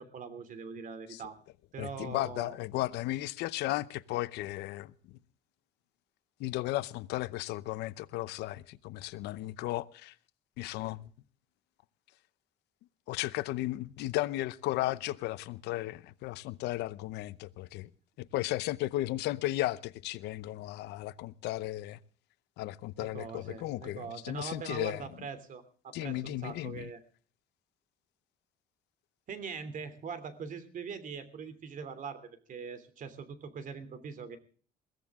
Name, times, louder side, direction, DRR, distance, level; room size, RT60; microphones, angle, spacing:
voice 1, 0.0-1.3 1.7-2.6 23.0-27.0 29.3-34.4, right 6 dB, 50° right, 3.0 m, -42 dB
voice 2, 1.8-4.9 6.4-10.1 10.6-11.1 13.1-17.9 18.2-22.0 22.6-25.0 25.9-26.9, left 16 dB, 85° left, 0.8 m, -35 dB
22.0 x 15.5 x 3.7 m
cardioid pair, 110°, 17 cm